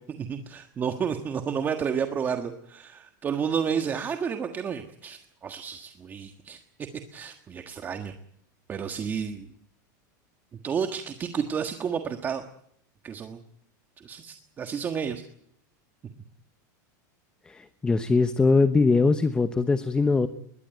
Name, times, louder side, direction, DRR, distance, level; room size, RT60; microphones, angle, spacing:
voice 1, 0.2-6.6 7.1-8.1 8.7-9.5 10.5-12.4 13.0-13.4 14.0-15.2, right 7 dB, 20° right, 7 dB, 1.5 m, -31 dB
voice 2, 17.5-20.3, left 4 dB, 10° left, 12 dB, 1.0 m, -22 dB
21.5 x 20.0 x 9.1 m, 0.70 s
supercardioid pair, 160°, 10 cm